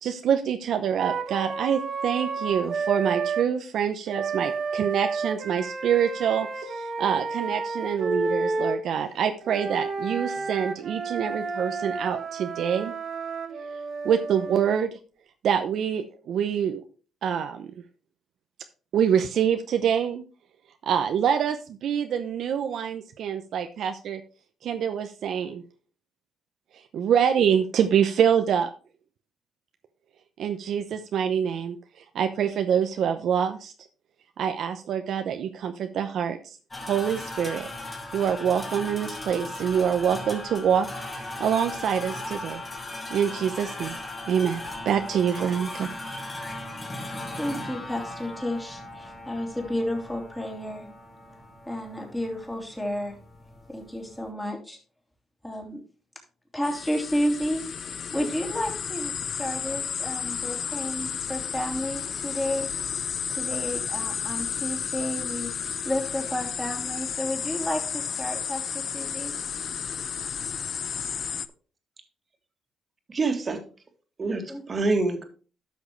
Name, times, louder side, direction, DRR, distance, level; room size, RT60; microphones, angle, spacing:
voice 1, 0.0-12.9 14.0-15.0 15.4-16.8 17.2-17.7 18.9-20.2 20.8-24.2 24.6-25.6 26.9-28.7 30.4-31.8 32.1-33.7 34.4-36.6 36.8-37.7 38.1-42.6 43.1-43.9 44.3-44.6 44.9-46.1, right 8 dB, 70° right, 7 dB, 0.7 m, -25 dB
Wind instrument woodwind instrument, 1.0-3.5 4.1-8.8 9.4-14.8, right 4 dB, 55° right, 1.6 m, -31 dB
sound 1, 36.7-54.3, left 1 dB, 25° left, 2.6 m, -38 dB
voice 2, 47.4-50.9 51.7-53.2 53.7-54.8 55.4-55.8 56.5-57.6 58.1-62.7 63.3-69.3 74.5-74.6, left 1 dB, 10° left, 1 dB, 3.0 m, -31 dB
sound 2, 56.6-71.5, left 7 dB, 55° left, 0.5 m, -32 dB
voice 3, 73.1-73.6 74.2-75.2, right 3 dB, 35° right, 5 dB, 2.0 m, -26 dB
12.0 x 6.2 x 3.2 m, 0.37 s
cardioid pair, 85°, 0 cm